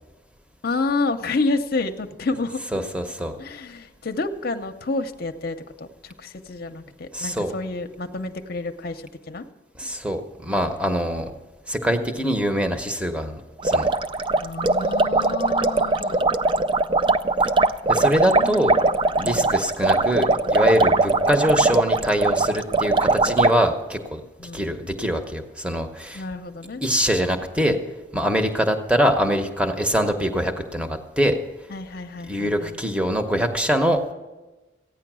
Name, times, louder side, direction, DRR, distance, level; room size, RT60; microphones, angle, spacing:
voice 1, 0.6-2.6 3.4-9.4 14.4-16.3 18.2-18.8 19.2-19.6 24.4-24.7 26.1-26.8 31.7-32.8, left 3 dB, 55° left, 7 dB, 0.7 m, -29 dB
voice 2, 2.7-3.4 7.1-7.5 9.8-11.3 11.7-13.9 17.9-18.8 19.2-24.2 24.5-26.2 26.8-27.8 28.1-31.4 32.3-34.1, equal, 5° right, 6 dB, 0.9 m, -23 dB
sound 1, 13.6-23.5, right 3 dB, 25° right, 0.4 m, -20 dB
14.5 x 9.6 x 6.1 m, 1.2 s
head